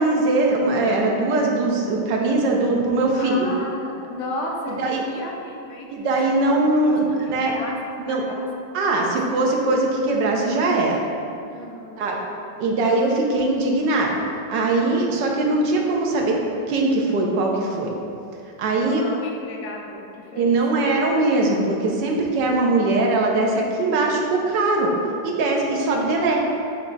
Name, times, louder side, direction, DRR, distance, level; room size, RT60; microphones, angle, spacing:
voice 1, 0.0-3.5 4.8-5.0 5.9-7.0 7.3-7.5 8.0-8.2 8.7-11.0 12.0-12.2 12.6-14.1 14.5-16.4 16.7-17.9 18.6-19.0 20.3-24.9 25.2-26.4, right 2 dB, 70° right, 0 dB, 1.4 m, -21 dB
voice 2, 3.2-4.8 5.0-6.1 6.8-7.0 7.2-7.8 8.0-8.5 9.0-9.2 11.5-12.1 18.8-21.0, left 2 dB, 60° left, -1 dB, 1.0 m, -34 dB
7.2 x 3.3 x 3.9 m, 2.5 s
omnidirectional pair, 2.1 m